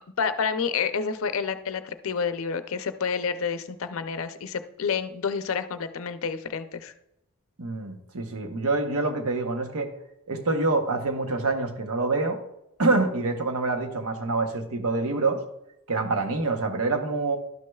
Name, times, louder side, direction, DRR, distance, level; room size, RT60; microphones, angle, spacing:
voice 1, 0.2-6.9, left 6 dB, 70° left, 10 dB, 0.5 m, -29 dB
voice 2, 7.6-9.9 10.3-12.4 12.8-15.4 15.9-17.4, right 3 dB, 85° right, 5 dB, 0.9 m, -26 dB
12.0 x 6.2 x 2.3 m, 0.85 s
head